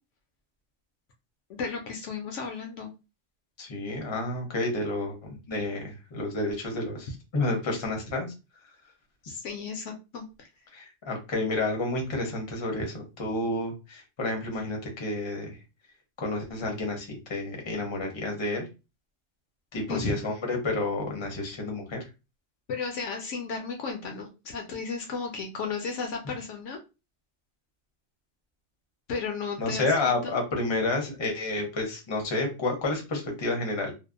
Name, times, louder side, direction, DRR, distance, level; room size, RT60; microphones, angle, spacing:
voice 1, 1.5-2.9 9.2-10.5 19.9-20.1 22.7-26.8 29.1-30.4, left 5 dB, 70° left, 3 dB, 0.9 m, -34 dB
voice 2, 3.6-8.3 10.7-15.6 16.2-18.7 19.7-22.0 29.6-33.9, left 2 dB, 30° left, 2 dB, 0.6 m, -30 dB
2.6 x 2.0 x 2.4 m, 0.28 s
omnidirectional pair, 1.4 m